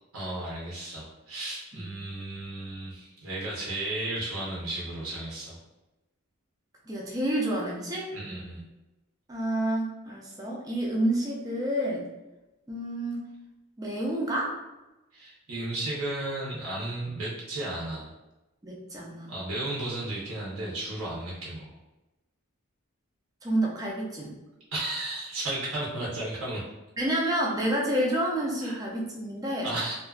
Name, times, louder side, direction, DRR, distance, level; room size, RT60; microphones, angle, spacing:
voice 1, 0.1-5.6 8.1-8.6 15.1-18.1 19.3-21.7 24.7-26.6 28.6-28.8 29.6-29.9, right 2 dB, 85° right, -5 dB, 0.6 m, -34 dB
voice 2, 6.9-8.1 9.3-12.1 12.7-13.3 13.8-14.6 18.6-19.3 23.4-24.4 27.0-29.7, right 1 dB, 15° right, -2 dB, 0.4 m, -29 dB
2.5 x 2.3 x 2.2 m, 1.0 s
head